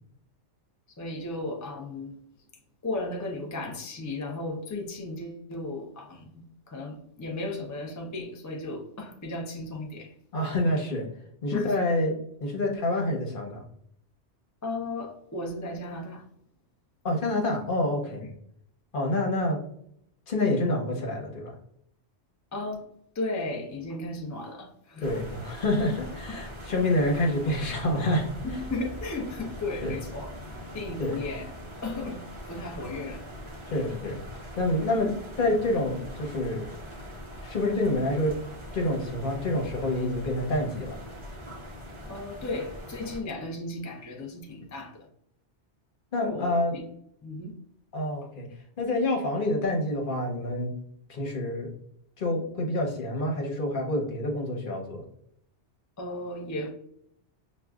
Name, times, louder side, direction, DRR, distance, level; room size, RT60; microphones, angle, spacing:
voice 1, 0.9-2.2 2.8-10.1 11.5-11.8 14.6-16.3 18.2-18.3 22.5-22.9 23.1-25.1 26.3-26.5 28.4-30.3 30.7-31.5 31.8-33.3 42.1-45.1 46.2-46.8 47.2-47.5 56.0-56.7, left 2 dB, 30° left, 1 dB, 0.3 m, -35 dB
voice 2, 10.3-11.0 11.4-12.1 12.4-13.6 17.0-18.2 18.9-19.6 20.3-21.5 25.0-28.3 29.8-30.0 31.0-31.2 33.7-34.2 34.6-36.7 37.4-38.4 38.7-41.0 46.1-46.8 47.9-48.5 48.8-50.7 51.1-51.7 52.2-55.0, left 1 dB, 50° left, 0 dB, 1.0 m, -27 dB
sound 1, 25.0-43.2, equal, 30° right, 0.8 m, -42 dB
6.2 x 2.3 x 2.3 m, 0.70 s
omnidirectional pair, 1.2 m